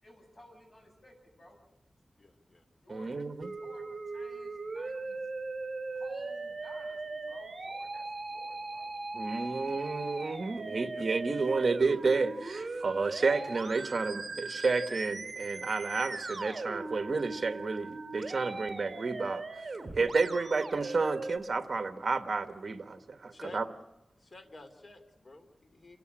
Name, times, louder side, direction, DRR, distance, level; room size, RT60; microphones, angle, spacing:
voice 1, 0.0-1.6 2.8-3.2 3.5-5.3 5.9-8.9, left 1 dB, 35° left, 7.4 m, -55 dB
voice 2, 2.2-2.6 10.9-11.0 23.3-23.6 24.2-26.0, left 2 dB, 50° left, 2.9 m, -50 dB
voice 3, 3.0-3.3 9.1-19.4 19.9-23.6, right 4 dB, 55° right, 1.2 m, -31 dB
Musical instrument, 3.4-21.4, right 3 dB, 40° right, 2.9 m, -39 dB
28.5 x 13.5 x 9.9 m
wide cardioid pair, 80°, 0 cm